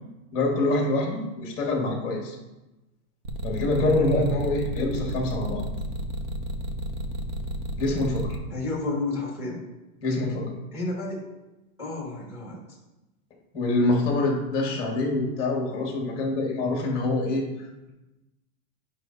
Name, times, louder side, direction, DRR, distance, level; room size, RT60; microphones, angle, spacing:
voice 1, 0.3-2.4 3.4-5.6 7.8-8.4 10.0-10.6 13.5-17.9, left 2 dB, 10° left, -1 dB, 1.5 m, -25 dB
sound 1, 3.2-8.4, right 1 dB, 30° right, 0.7 m, -32 dB
voice 2, 3.7-4.3 8.5-9.6 10.7-11.3 11.8-12.8 14.7-14.8, left 2 dB, 5° right, -3 dB, 1.9 m, -31 dB
11.0 x 5.5 x 2.7 m, 1.0 s
supercardioid pair, 170°, 45 cm